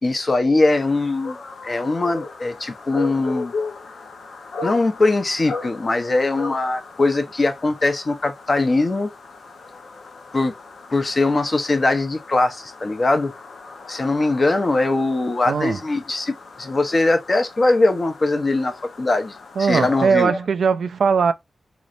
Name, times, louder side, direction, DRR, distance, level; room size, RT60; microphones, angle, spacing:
voice 1, 0.0-3.5 4.6-9.1 10.3-10.5 10.9-13.3 13.9-20.4, left 2 dB, 40° left, 0.8 m, -21 dB
sound 1, 0.7-20.1, left 3 dB, 85° left, 0.7 m, -37 dB
voice 2, 15.5-15.8 19.6-21.3, right 5 dB, 85° right, 0.4 m, -19 dB
4.1 x 3.1 x 2.5 m
wide cardioid pair, 105°, 0 cm